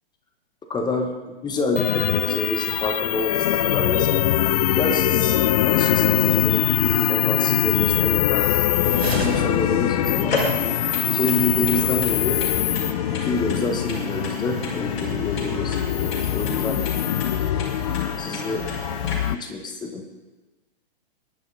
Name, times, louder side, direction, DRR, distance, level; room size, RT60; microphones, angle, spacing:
voice 1, 0.7-4.1 4.8-5.4 5.6-8.4 8.8-10.3 11.1-12.4 13.1-16.8 18.2-18.6 19.3-20.0, left 3 dB, 15° left, 4 dB, 1.7 m, -28 dB
sound 1, 1.8-19.4, left 13 dB, 40° left, 0.4 m, -22 dB
sound 2, 8.4-10.2, right 2 dB, 90° right, 2.1 m, -31 dB
sound 3, 8.9-19.1, left 2 dB, 60° left, 5.7 m, -32 dB
21.5 x 11.0 x 4.2 m, 1.2 s
figure-of-eight pair, 115°, 30 cm